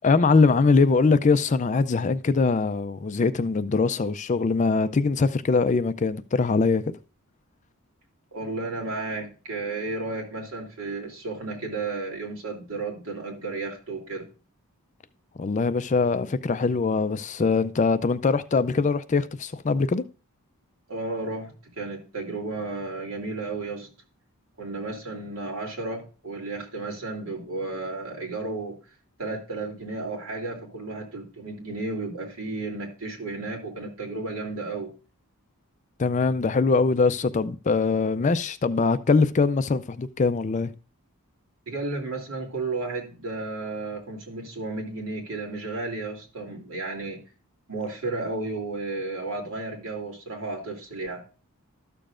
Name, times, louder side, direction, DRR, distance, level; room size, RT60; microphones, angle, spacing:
voice 1, 0.0-7.0 15.4-20.0 36.0-40.7, left 4 dB, 35° left, 0.4 m, -22 dB
voice 2, 8.3-14.3 20.9-23.9 24.6-28.8 29.2-34.9 41.7-47.2 47.7-51.2, right 3 dB, 65° right, 2.9 m, -33 dB
13.0 x 6.8 x 2.5 m
head